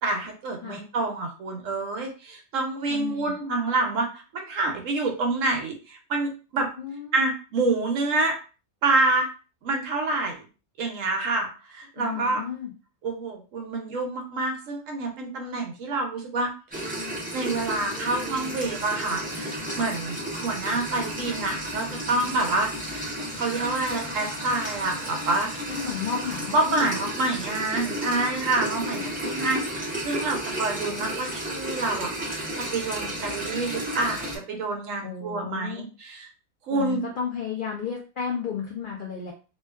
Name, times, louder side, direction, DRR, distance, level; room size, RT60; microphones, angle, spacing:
voice 1, 0.0-6.7 7.1-8.4 8.8-9.3 9.6-10.4 10.8-12.4 13.0-16.9 17.3-23.0 23.3-25.5 26.5-36.3 36.7-37.0, right 2 dB, 70° right, 2 dB, 0.9 m, -27 dB
voice 2, 2.9-3.3 6.8-7.2 12.0-12.7 25.7-26.9 35.0-35.9 36.7-39.3, left 7 dB, 85° left, -1 dB, 0.4 m, -33 dB
sound 1, 16.7-34.4, right 1 dB, 15° right, 0.3 m, -33 dB
2.7 x 2.2 x 2.2 m, 0.34 s
omnidirectional pair, 1.5 m